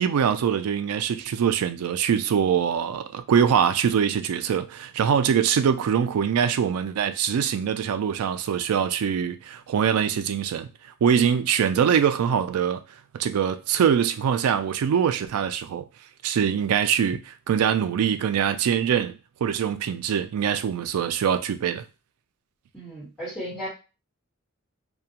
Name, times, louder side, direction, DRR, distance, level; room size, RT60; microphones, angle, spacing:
voice 1, 0.0-10.7 11.0-12.8 13.1-15.8 16.2-21.8, right 8 dB, 85° right, 0.3 m, -23 dB
voice 2, 22.7-23.7, equal, 10° left, 1.3 m, -35 dB
2.4 x 2.2 x 2.8 m
head